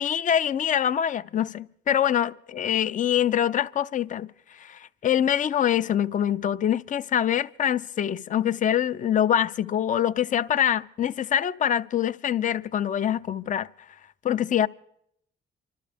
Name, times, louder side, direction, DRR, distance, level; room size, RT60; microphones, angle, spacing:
voice 1, 0.0-4.3 4.6-13.7 14.2-14.7, left 10 dB, 40° left, 0.5 m, -24 dB
27.0 x 12.5 x 3.4 m
cardioid pair, 90°, 20 cm